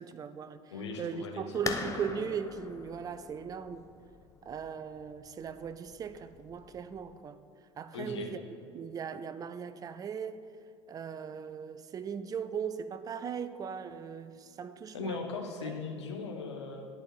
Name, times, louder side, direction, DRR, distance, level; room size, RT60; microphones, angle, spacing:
voice 1, 0.0-3.9 4.4-7.4 7.8-8.4 8.7-10.5 10.9-15.2 15.6-15.8, right 7 dB, 25° right, 12 dB, 0.4 m, -38 dB
voice 2, 0.7-1.4 7.9-8.3 14.9-16.9, left 4 dB, 75° left, 3 dB, 0.9 m, -38 dB
sound 1, 1.7-7.1, left 4 dB, 20° left, 0.6 m, -42 dB
10.0 x 4.3 x 4.5 m, 2.4 s
figure-of-eight pair, 70°, 15 cm